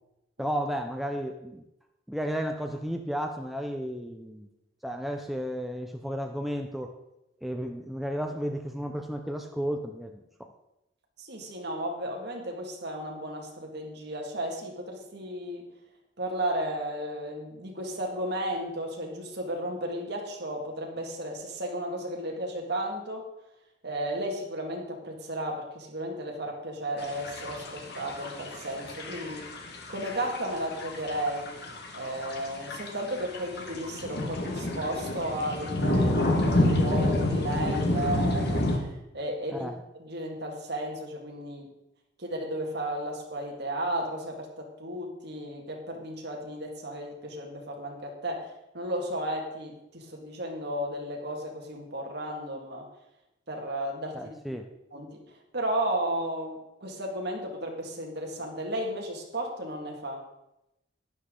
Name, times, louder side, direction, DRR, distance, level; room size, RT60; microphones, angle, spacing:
voice 1, 0.4-1.6 2.1-4.5 4.8-6.9 7.4-10.5 39.5-39.8 54.1-54.7, equal, ahead, 3 dB, 0.6 m, -33 dB
voice 2, 11.2-15.7 16.2-23.3 23.8-29.5 29.9-31.6 31.9-39.7 40.0-41.7 42.2-48.5 48.7-52.8 53.5-54.3 54.9-55.2 55.5-60.2, right 1 dB, 60° right, 1 dB, 2.0 m, -34 dB
sound 1, 27.0-38.8, left 1 dB, 55° left, 1.6 m, -29 dB
11.5 x 10.0 x 3.8 m, 0.90 s
head